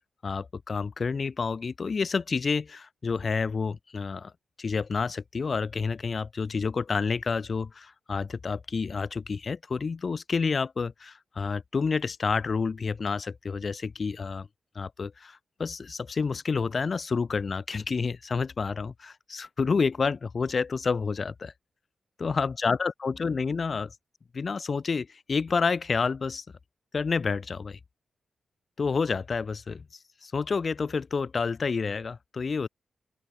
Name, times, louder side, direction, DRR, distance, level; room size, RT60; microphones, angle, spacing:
voice 1, 0.2-4.3 4.6-14.5 14.7-21.5 22.2-23.9 24.3-26.4 26.9-27.8 28.8-29.8 30.2-32.7, left 5 dB, 40° left, 1.4 m, -29 dB
open air
wide cardioid pair, 160°, 0 cm